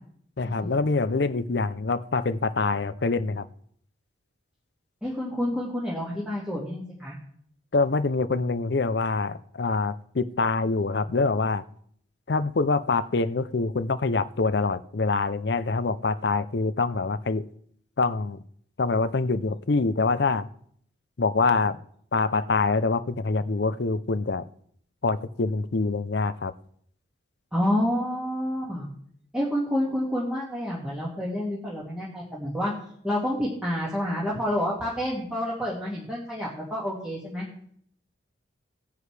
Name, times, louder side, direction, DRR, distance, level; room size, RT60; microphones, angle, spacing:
voice 1, 0.4-3.5 7.7-11.6 12.3-17.4 18.0-18.4 18.8-20.5 21.2-21.8 22.1-24.4 25.0-26.5, left 3 dB, 55° left, 0.5 m, -25 dB
voice 2, 5.0-7.2 27.5-28.9 29.3-32.7 33.0-37.5, equal, 5° right, 2.1 m, -28 dB
17.5 x 9.5 x 3.4 m
head